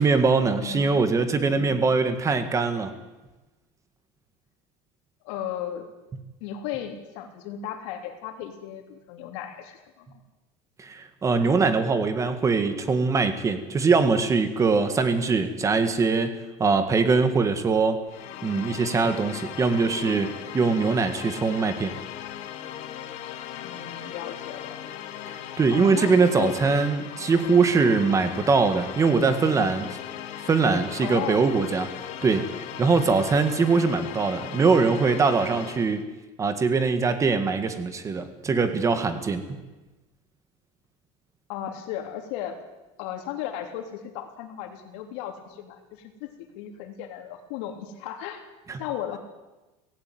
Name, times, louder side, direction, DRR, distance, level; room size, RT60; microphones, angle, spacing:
voice 1, 0.0-2.9 10.8-18.0 18.4-21.9 25.3-29.9 30.5-31.9 32.2-32.5 32.8-36.1 36.4-39.4 48.7-48.8, right 4 dB, 20° right, 9 dB, 1.8 m, -22 dB
voice 2, 0.6-0.9 1.5-1.8 5.2-5.9 6.4-10.1 23.6-24.8 25.7-26.5 31.0-31.5 41.5-42.5 43.0-48.5 48.8-49.2, left 10 dB, 80° left, 5 dB, 3.4 m, -35 dB
sound 1, 18.1-36.0, left 11 dB, 55° left, 2.0 m, -38 dB
17.0 x 16.5 x 9.4 m, 1.1 s
cardioid pair, 145°, 15 cm